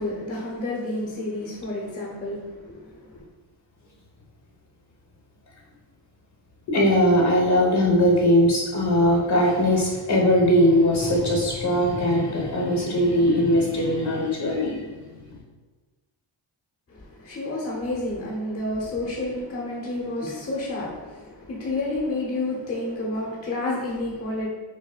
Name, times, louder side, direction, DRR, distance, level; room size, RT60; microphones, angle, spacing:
voice 1, 0.0-3.2 16.9-24.5, left 2 dB, 30° left, -4 dB, 0.9 m, -30 dB
voice 2, 6.7-15.4, equal, 55° left, -1 dB, 1.3 m, -20 dB
6.2 x 2.1 x 2.3 m, 1.3 s
cardioid pair, 70°, 47 cm